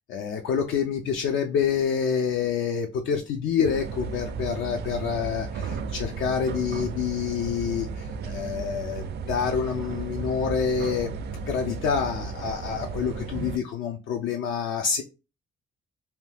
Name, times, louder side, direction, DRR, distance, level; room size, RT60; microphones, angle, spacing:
voice 1, 0.1-11.1 11.4-15.0, left 7 dB, 75° left, 3 dB, 0.5 m, -27 dB
sound 1, 3.6-13.6, right 5 dB, 55° right, 0.4 m, -34 dB
2.8 x 2.3 x 3.3 m, 0.29 s
cardioid pair, 90°, 20 cm